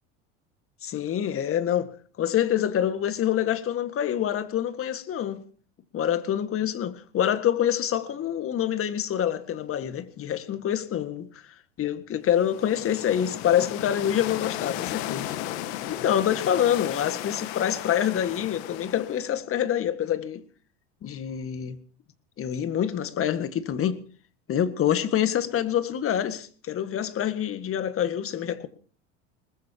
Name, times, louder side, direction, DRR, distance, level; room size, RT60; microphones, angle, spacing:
voice 1, 0.8-1.9 2.2-5.4 5.9-11.3 11.8-15.3 15.9-20.4 21.0-21.8 22.4-24.0 24.5-28.7, left 10 dB, 40° left, 1.8 m, -26 dB
sound 1, 12.3-19.4, left 13 dB, 70° left, 1.6 m, -35 dB
22.5 x 20.0 x 2.9 m
hypercardioid pair, 95°, 34 cm